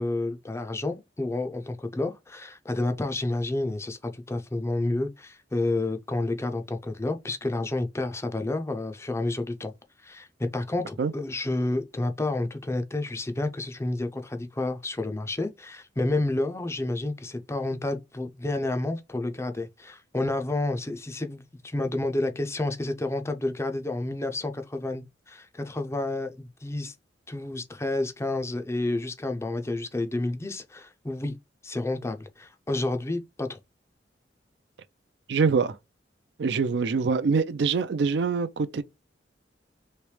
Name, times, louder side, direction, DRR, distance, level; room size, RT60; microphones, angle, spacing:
voice 1, 0.0-9.7 10.0-10.3 10.5-26.9 27.3-31.4 31.6-33.6, left 2 dB, 15° left, 0.4 m, -30 dB
voice 2, 35.3-35.8 36.4-38.8, right 5 dB, 70° right, 0.4 m, -24 dB
3.2 x 3.0 x 3.2 m
head